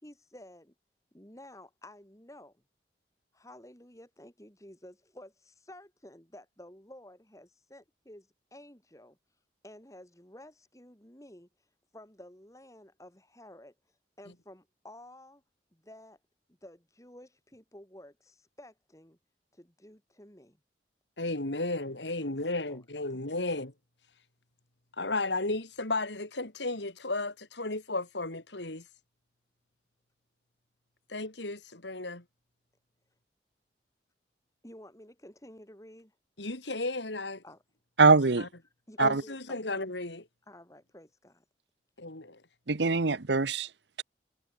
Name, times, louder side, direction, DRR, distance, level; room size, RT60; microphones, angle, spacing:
voice 1, 0.0-0.7 1.1-2.6 3.3-9.2 9.6-11.5 11.9-13.7 14.2-15.4 15.7-16.2 16.6-19.2 19.5-20.6 21.7-21.8 22.2-22.8 23.1-23.2 34.6-36.1 37.4-37.6 38.9-39.8 40.5-41.4, left 1 dB, 20° left, 4.0 m, -52 dB
voice 2, 21.2-23.7 25.0-28.9 31.1-32.2 36.4-37.4 38.0-38.5 39.0-40.3 42.0-42.4, left 2 dB, 85° left, 3.5 m, -34 dB
voice 3, 38.0-38.5 39.0-39.2 42.7-43.7, right 4 dB, 80° right, 1.0 m, -23 dB
head